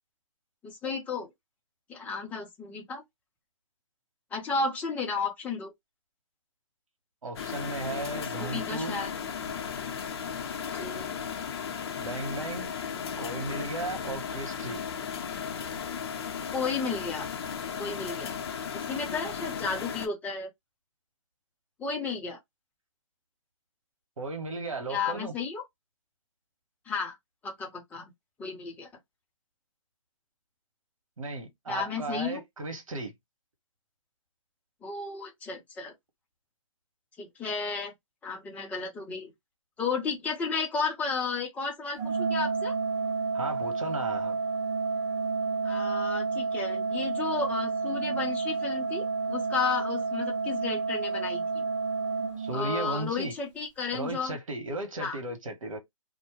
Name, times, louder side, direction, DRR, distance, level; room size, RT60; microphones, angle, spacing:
voice 1, 0.6-1.3 1.9-3.0 4.3-5.7 8.2-9.1 10.8-11.1 16.5-17.3 17.8-18.3 18.9-20.5 21.8-22.4 24.9-25.6 26.9-27.2 27.4-28.1 28.4-28.9 31.7-32.4 34.8-35.9 37.2-37.9 38.2-39.3 39.8-42.7 45.6-51.6 52.5-54.4 55.0-55.2, left 4 dB, 10° left, 0.6 m, -33 dB
voice 2, 7.2-9.0 12.0-12.7 13.2-14.8 24.2-25.3 31.2-33.1 43.3-44.4 52.4-53.3 53.9-55.8, right 2 dB, 75° right, 1.4 m, -35 dB
sound 1, 7.4-20.1, left 7 dB, 50° left, 0.6 m, -35 dB
Organ, 42.0-53.0, right 4 dB, 20° right, 1.2 m, -30 dB
2.6 x 2.1 x 3.1 m
hypercardioid pair, 145°, 17 cm